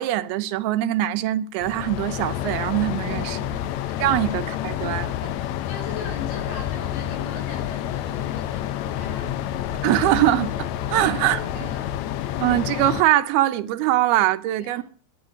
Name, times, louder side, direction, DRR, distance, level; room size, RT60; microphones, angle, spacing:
voice 1, 0.0-3.4 4.0-5.1 9.8-10.5 10.9-11.4 12.4-14.8, right 14 dB, 85° right, 2.8 m, -22 dB
sound 1, 1.6-13.0, left 11 dB, 90° left, 1.6 m, -29 dB
voice 2, 2.9-3.7 4.1-4.2 5.2-9.4 10.9-12.0 14.6-14.8, left 3 dB, 55° left, 6.3 m, -40 dB
11.5 x 9.9 x 9.6 m
omnidirectional pair, 4.4 m